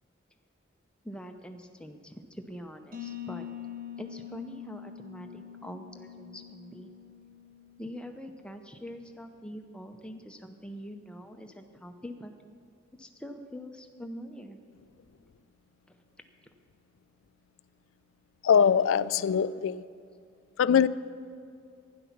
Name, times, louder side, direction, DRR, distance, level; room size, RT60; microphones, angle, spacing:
voice 1, 1.0-3.5 4.0-6.9 7.8-12.3 13.0-14.6 15.9-16.0, equal, 5° left, 5 dB, 0.6 m, -44 dB
sound 1, 2.9-8.5, left 10 dB, 45° right, 0.9 m, -44 dB
voice 2, 18.4-19.8 20.6-20.9, left 7 dB, 80° left, 16 dB, 0.3 m, -22 dB
12.0 x 10.5 x 5.9 m, 2.4 s
head